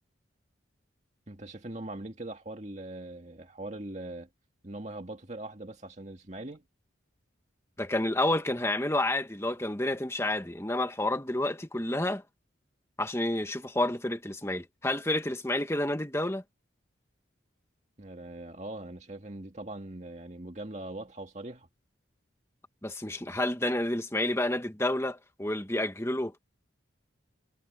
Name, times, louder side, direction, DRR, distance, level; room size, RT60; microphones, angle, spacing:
voice 1, 1.3-4.3 4.6-6.6 18.0-21.7, right 1 dB, 35° right, 2.1 m, -41 dB
voice 2, 7.8-12.2 13.0-16.4 22.8-26.4, left 1 dB, 15° left, 1.5 m, -29 dB
head